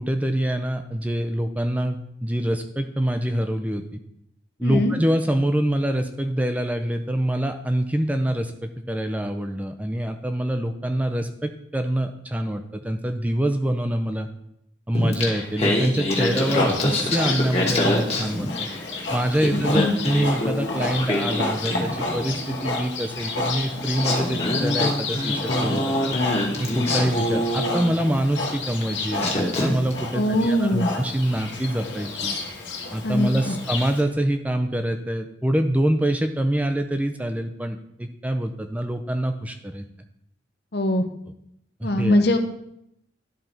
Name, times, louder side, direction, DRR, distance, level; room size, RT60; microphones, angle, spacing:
voice 1, 0.0-4.0 4.6-14.3 14.9-18.7 19.1-26.2 26.6-32.4 32.9-39.8 41.8-42.2, right 1 dB, 10° right, 7 dB, 0.4 m, -25 dB
voice 2, 4.6-4.9 19.5-19.9 30.1-30.9 33.0-33.5 40.7-41.0 41.8-42.4, left 1 dB, 60° left, 7 dB, 0.8 m, -22 dB
Singing, 14.9-18.9 19.2-22.4 23.5-23.6 24.0-28.2 28.8-28.9 29.2-30.0, left 1 dB, 35° left, 1.4 m, -26 dB
Livestock farm animals working animals, 16.1-34.0, left 3 dB, 80° left, 1.4 m, -30 dB
11.5 x 4.0 x 4.4 m, 0.77 s
head